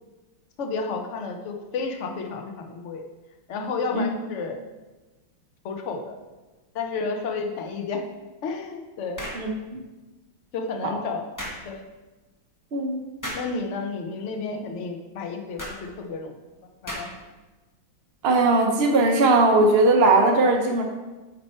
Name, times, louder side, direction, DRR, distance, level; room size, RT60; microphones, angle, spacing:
voice 1, 0.6-3.0 3.5-4.6 5.6-6.2 6.7-8.0 8.4-9.3 10.5-11.2 11.7-11.8 13.3-16.3 16.8-17.1, left 4 dB, 60° left, 3 dB, 0.8 m, -31 dB
sound 1, 9.2-9.5 11.4-11.6 13.2-13.5 15.6-15.8 16.9-17.3, equal, 10° left, 1.1 m, -34 dB
voice 2, 9.3-9.8 10.8-10.9 12.7-13.0 18.2-20.8, right 2 dB, 70° right, 2 dB, 0.5 m, -19 dB
8.9 x 4.4 x 4.3 m, 1.2 s
omnidirectional pair, 2.2 m